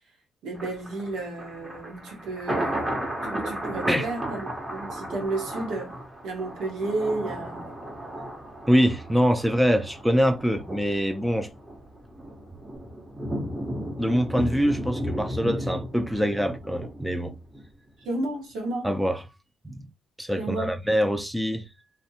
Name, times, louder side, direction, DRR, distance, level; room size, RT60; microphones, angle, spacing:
voice 1, 0.4-2.9 3.2-5.9 6.2-7.6 18.0-18.9 20.4-20.8, right 2 dB, 85° right, 1.0 m, -32 dB
Thunder, 0.5-17.7 18.0-18.1, right 1 dB, 20° right, 0.9 m, -34 dB
voice 2, 8.7-11.5 14.0-17.3 18.8-19.2 19.6-19.9 20.2-21.6, equal, 5° right, 0.4 m, -24 dB
2.5 x 2.1 x 2.8 m
cardioid pair, 90°, 0 cm